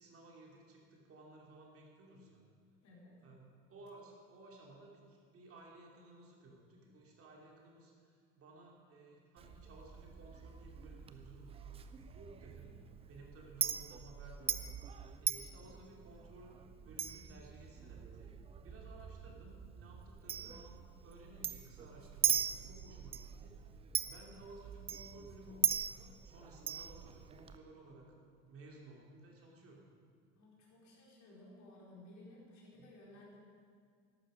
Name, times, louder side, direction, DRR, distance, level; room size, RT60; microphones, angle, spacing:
voice 1, 0.0-2.4 3.2-14.6 15.2-18.3 18.6-25.8 26.2-28.1 28.5-29.8 32.7-32.9, right 2 dB, 30° right, -1 dB, 3.2 m, -57 dB
voice 2, 2.8-3.2 15.7-15.9 30.4-33.4, left 1 dB, 40° left, -3 dB, 4.4 m, -57 dB
Chink clink, 9.4-27.6, right 8 dB, 15° right, 0.4 m, -40 dB
14.0 x 11.5 x 5.2 m, 2.1 s
figure-of-eight pair, 75°, 45 cm